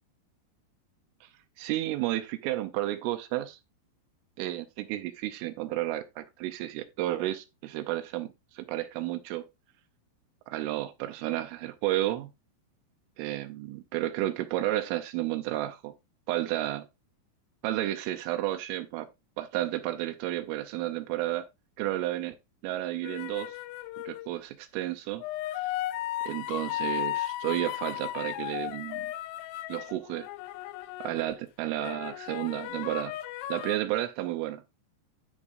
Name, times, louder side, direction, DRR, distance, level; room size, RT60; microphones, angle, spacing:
voice 1, 1.6-3.6 4.4-8.3 8.5-9.4 10.5-12.3 13.2-15.9 16.3-16.9 17.6-19.1 19.4-21.5 21.8-22.4 22.6-23.5 24.1-25.2 25.5-25.7 26.3-29.1 29.7-30.3 31.0-33.1 33.5-34.8, right 15 dB, 80° right, 3.0 m, -32 dB
sound 1, 23.0-24.3 25.2-31.4 31.8-33.8, left 14 dB, 80° left, 2.9 m, -35 dB
13.0 x 4.6 x 2.5 m
omnidirectional pair, 5.9 m